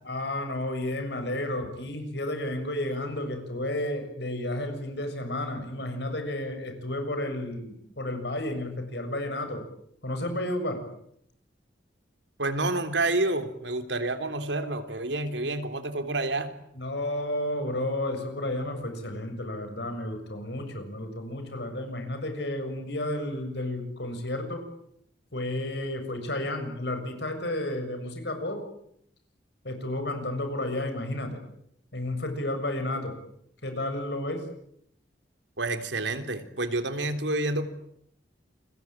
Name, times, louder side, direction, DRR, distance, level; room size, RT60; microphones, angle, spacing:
voice 1, 0.0-9.7 10.0-10.8 16.7-24.7 25.3-28.6 29.6-31.4 31.9-33.2 33.6-34.5, left 1 dB, 65° left, 7 dB, 7.1 m, -32 dB
voice 2, 12.4-16.5 35.6-37.7, right 2 dB, 80° right, 8 dB, 3.3 m, -29 dB
29.0 x 22.5 x 8.9 m, 0.72 s
head